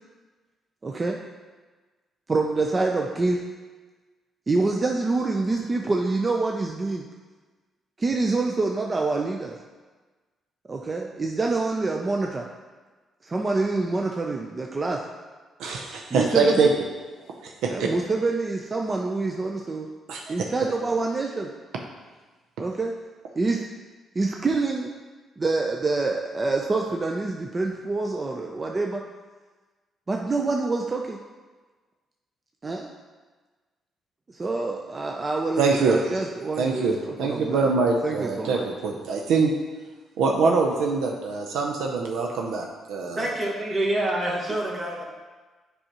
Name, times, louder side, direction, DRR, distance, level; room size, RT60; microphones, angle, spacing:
voice 1, 0.8-1.2 2.3-3.4 4.5-7.1 8.0-9.6 10.7-12.4 13.2-15.0 16.1-16.7 17.7-19.9 20.3-21.5 22.6-22.9 23.4-23.7 24.2-24.9 25.4-29.0 30.1-31.2 32.6-32.9 34.3-37.7 38.0-38.7, right 3 dB, 30° right, 1 dB, 0.5 m, -26 dB
voice 2, 15.6-16.7 17.4-17.9 20.1-20.3 35.6-36.2 36.6-39.5 40.2-43.3, right 4 dB, 85° right, 1 dB, 0.5 m, -24 dB
voice 3, 43.2-45.0, right 1 dB, 45° right, -3 dB, 1.5 m, -26 dB
7.8 x 4.9 x 2.9 m, 1.3 s
cardioid pair, 90°, 0 cm